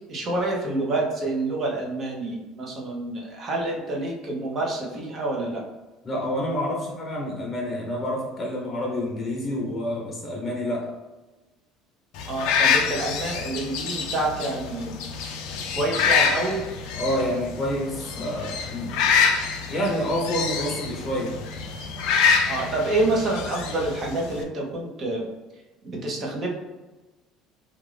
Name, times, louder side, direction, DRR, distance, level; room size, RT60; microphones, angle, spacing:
voice 1, 0.1-5.6 12.3-14.9 15.8-16.6 22.5-25.3 25.8-26.5, right 2 dB, 35° right, -1 dB, 0.7 m, -27 dB
voice 2, 6.0-10.9 17.0-19.0 19.7-21.4, equal, 20° left, -2 dB, 0.7 m, -28 dB
sound 1, 12.2-24.4, left 6 dB, 75° left, 0.4 m, -26 dB
2.5 x 2.4 x 3.2 m, 1.1 s
cardioid pair, 145°, 0 cm